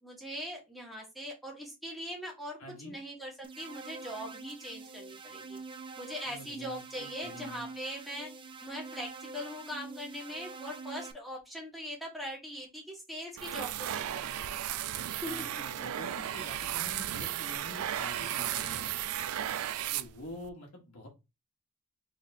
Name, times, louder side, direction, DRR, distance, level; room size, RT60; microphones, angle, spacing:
voice 1, 0.0-2.6 2.8-5.6 6.0-8.3 8.6-14.4 15.2-15.8 16.6-16.7, equal, ahead, -2 dB, 1.6 m, -41 dB
voice 2, 2.6-3.0 6.2-7.6 15.2-18.8 19.2-19.3 19.9-21.1, left 1 dB, 85° left, 0 dB, 1.2 m, -47 dB
sound 1, 3.4-11.1, right 4 dB, 25° right, 0.4 m, -46 dB
sound 2, 13.4-20.5, right 11 dB, 85° right, 0.4 m, -35 dB
4.0 x 3.5 x 2.6 m, 0.24 s
head